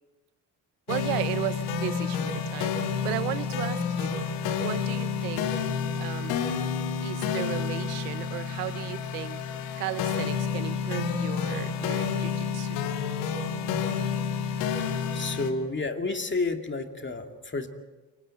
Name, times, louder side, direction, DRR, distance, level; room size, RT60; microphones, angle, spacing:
sound 1, 0.9-15.5, left 6 dB, 75° left, 2.0 m, -29 dB
voice 1, 0.9-2.7 3.0-4.3 4.5-5.5 6.0-6.4 7.0-9.4 9.8-12.9, right 16 dB, 80° right, 16 dB, 0.9 m, -35 dB
voice 2, 14.7-17.7, left 3 dB, 25° left, 5 dB, 2.6 m, -31 dB
29.5 x 25.5 x 4.4 m, 1.2 s
hypercardioid pair, 50°, 46 cm